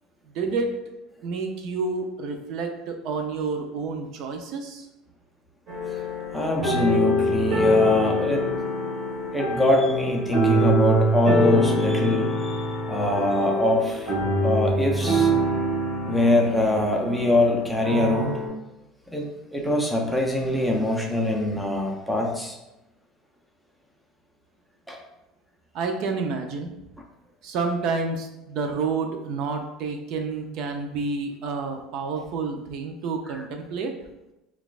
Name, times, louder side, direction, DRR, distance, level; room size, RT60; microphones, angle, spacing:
voice 1, 0.3-0.7 1.2-4.9 25.7-26.7 27.4-33.9, right 4 dB, 55° right, 4 dB, 0.4 m, -29 dB
sound 1, 5.7-18.5, equal, 30° right, 1.4 m, -24 dB
voice 2, 6.3-8.5 9.3-14.1 14.4-15.3 16.1-18.4 19.1-22.6 24.9-25.0 33.3-33.4, left 1 dB, ahead, -1 dB, 0.5 m, -23 dB
5.9 x 2.3 x 2.4 m, 0.93 s
cardioid pair, 160°, 0 cm